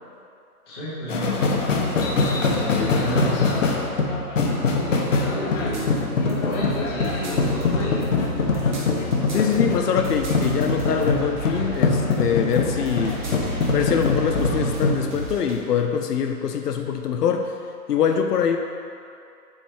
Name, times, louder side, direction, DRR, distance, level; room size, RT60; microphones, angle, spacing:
voice 1, 0.7-1.3 2.3-3.8 4.4-5.9 6.2-8.0, equal, 15° left, -11 dB, 1.0 m, -31 dB
sound 1, 1.1-15.0, left 3 dB, 55° left, 0.8 m, -23 dB
sound 2, 5.6-15.5, right 1 dB, 30° right, 0.9 m, -33 dB
voice 2, 9.3-13.2 13.7-17.5 17.9-18.6, left 7 dB, 90° left, 5 dB, 0.7 m, -24 dB
7.9 x 3.2 x 4.7 m, 2.5 s
hypercardioid pair, 165°, 46 cm